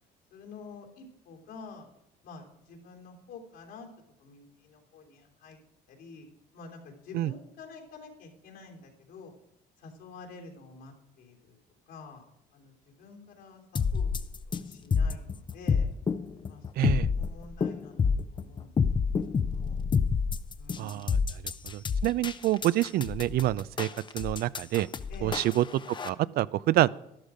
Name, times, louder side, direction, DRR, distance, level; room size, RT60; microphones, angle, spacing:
voice 1, 0.3-1.9 2.2-3.9 4.2-5.6 5.9-6.3 6.5-9.3 9.8-11.6 11.9-12.2 12.5-14.2 14.5-15.9 16.5-18.0 18.3-18.7 19.1-19.9 20.6-21.5 25.1-25.4, left 4 dB, 80° left, 1 dB, 3.3 m, -48 dB
sound 1, 13.8-26.1, left 5 dB, 25° left, 0.6 m, -28 dB
voice 2, 16.8-17.1 20.8-21.2 21.6-23.9 24.1-24.9 25.2-26.9, right 14 dB, 65° right, 20 dB, 0.4 m, -27 dB
12.0 x 11.5 x 5.0 m, 0.80 s
cardioid pair, 110°, 17 cm